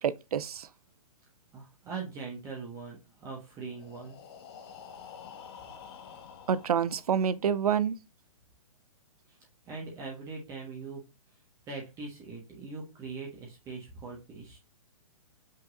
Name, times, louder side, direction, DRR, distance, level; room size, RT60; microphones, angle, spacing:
voice 1, 0.0-0.7 6.5-7.9, right 8 dB, 85° right, 0.5 m, -27 dB
voice 2, 1.5-4.2 9.3-9.4 9.7-11.0 11.7-14.6, right 4 dB, 15° right, 1.2 m, -41 dB
Breathing, 3.6-7.5, left 7 dB, 45° left, 0.9 m, -49 dB
5.4 x 3.9 x 2.4 m
hypercardioid pair, 150°, 19 cm